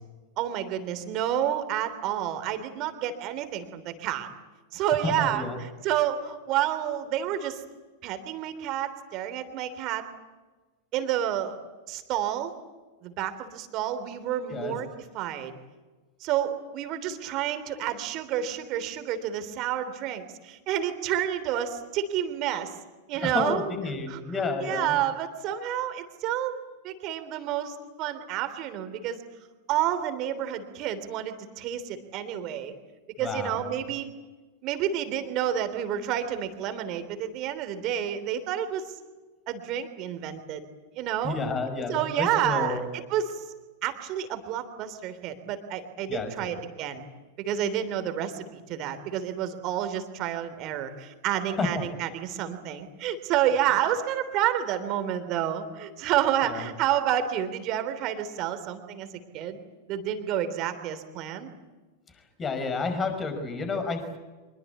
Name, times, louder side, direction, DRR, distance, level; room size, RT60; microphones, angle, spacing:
voice 1, 0.4-4.3 4.7-7.6 8.0-10.1 10.9-11.6 11.9-12.5 13.0-14.9 15.1-15.6 16.2-22.7 23.1-23.6 24.1-24.2 24.6-26.5 26.8-29.2 29.7-32.7 33.2-34.1 34.6-38.9 39.5-40.6 41.0-41.4 41.9-43.4 43.8-47.1 47.4-59.1 59.3-59.6 59.9-61.5, right 10 dB, 40° right, 9 dB, 3.3 m, -29 dB
voice 2, 5.0-5.6 14.5-14.8 23.2-25.0 33.2-33.8 41.2-42.8 46.1-46.6 51.6-51.8 56.4-56.6 62.4-64.2, left 3 dB, 20° left, 8 dB, 5.6 m, -30 dB
26.0 x 22.5 x 8.5 m, 1.2 s
figure-of-eight pair, 90°, 0 cm